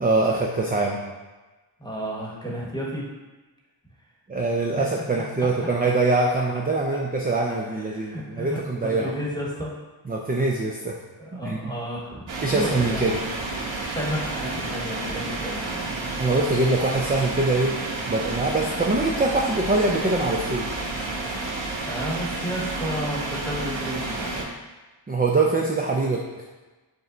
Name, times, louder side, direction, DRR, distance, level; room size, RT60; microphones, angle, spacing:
voice 1, 0.0-1.0 4.3-9.1 10.1-11.0 11.3-11.7 12.4-13.2 16.1-17.7 18.1-20.8 25.1-26.2, right 2 dB, 20° right, -1 dB, 0.4 m, -23 dB
voice 2, 1.8-3.1 4.7-4.8 7.6-9.7 11.2-13.1 13.8-15.9 21.8-24.5, equal, 10° left, -4 dB, 1.1 m, -32 dB
sound 1, 12.3-24.5, right 2 dB, 70° right, 0.7 m, -30 dB
5.2 x 2.1 x 3.8 m, 1.2 s
wide cardioid pair, 50°, 48 cm